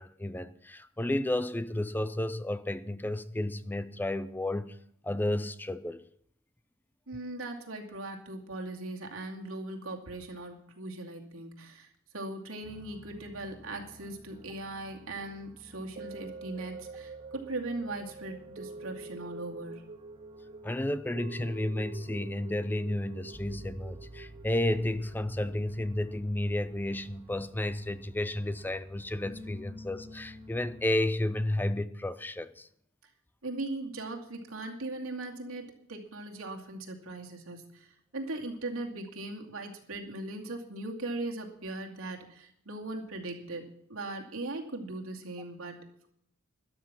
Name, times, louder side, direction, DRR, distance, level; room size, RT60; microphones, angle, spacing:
voice 1, 0.0-4.8 5.0-6.0 20.6-32.7, left 1 dB, 10° left, 0.5 m, -32 dB
voice 2, 7.1-11.9 12.1-19.8 33.4-46.1, right 2 dB, 85° right, 2.5 m, -39 dB
sound 1, 12.6-30.9, left 1 dB, 25° right, 1.7 m, -53 dB
sound 2, 16.0-26.3 26.8-26.9, right 4 dB, 45° right, 0.5 m, -47 dB
13.0 x 12.0 x 5.9 m
head